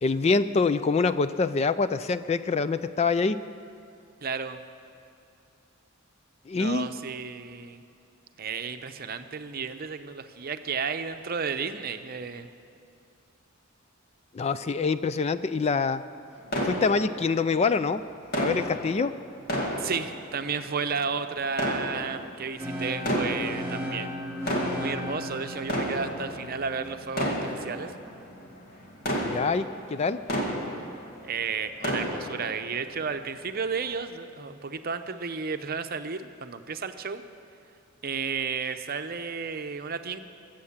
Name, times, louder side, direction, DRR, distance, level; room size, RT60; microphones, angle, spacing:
voice 1, 0.0-3.4 6.5-6.9 14.3-16.0 16.6-18.0 18.3-19.1 29.2-30.2, left 4 dB, 30° left, 13 dB, 0.4 m, -25 dB
voice 2, 4.2-4.6 6.5-7.8 8.4-12.5 19.8-24.2 24.8-27.9 31.2-37.2 38.0-40.2, right 5 dB, 45° right, 9 dB, 0.7 m, -33 dB
sound 1, 16.5-17.6 18.3-20.7 21.5-22.5 23.0-23.9 24.3-31.3 31.6-32.7 33.1-33.2 33.8-33.9, equal, 50° left, 2.1 m, -31 dB
sound 2, 22.6-28.5, equal, 10° right, 2.9 m, -37 dB
23.0 x 7.7 x 7.3 m, 2.6 s
head